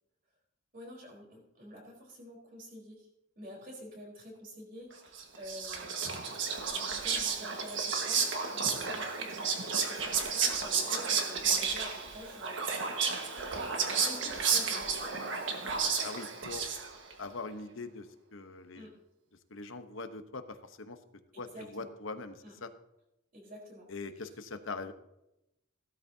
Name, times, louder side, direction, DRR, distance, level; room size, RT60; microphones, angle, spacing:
voice 1, 0.7-3.1 3.4-6.1 6.8-12.6 13.9-15.1 18.7-18.9 21.3-21.9 22.4-22.5 23.3-23.8, equal, 45° right, -2 dB, 4.2 m, -48 dB
Whispering, 5.1-17.1, right 5 dB, 65° right, 1.6 m, -32 dB
voice 2, 16.0-16.7 17.2-18.9 19.5-21.0 21.4-22.7 23.9-24.9, left 3 dB, 75° left, 8 dB, 1.0 m, -42 dB
16.0 x 13.0 x 2.8 m, 0.87 s
head